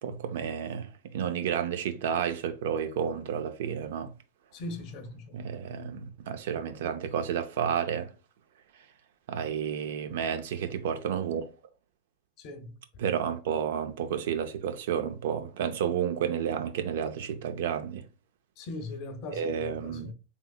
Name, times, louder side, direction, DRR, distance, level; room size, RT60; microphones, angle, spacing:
voice 1, 0.0-4.1 5.3-8.1 9.3-11.5 13.0-18.0 19.3-20.1, right 8 dB, 75° right, 0.5 m, -31 dB
voice 2, 4.5-5.4 12.4-12.8 18.6-20.1, left 2 dB, 50° left, 0.7 m, -40 dB
3.6 x 2.9 x 2.3 m
supercardioid pair, 130°, 0 cm